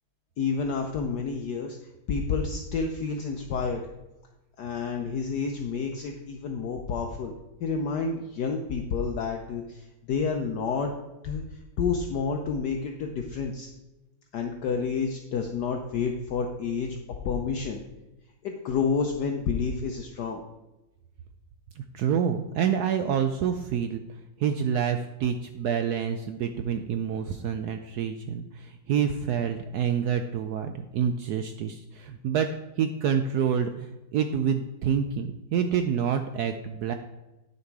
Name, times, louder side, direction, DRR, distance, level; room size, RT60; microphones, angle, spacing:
voice 1, 0.4-1.8 2.1-3.8 4.6-7.3 7.6-10.9 11.2-13.7 14.3-17.0 17.2-17.8 18.4-20.4, left 5 dB, 65° left, 3 dB, 1.2 m, -29 dB
voice 2, 21.8-24.0 24.4-32.5 32.8-36.9, right 8 dB, 80° right, 7 dB, 0.8 m, -27 dB
9.5 x 6.9 x 4.6 m, 1.0 s
omnidirectional pair, 2.2 m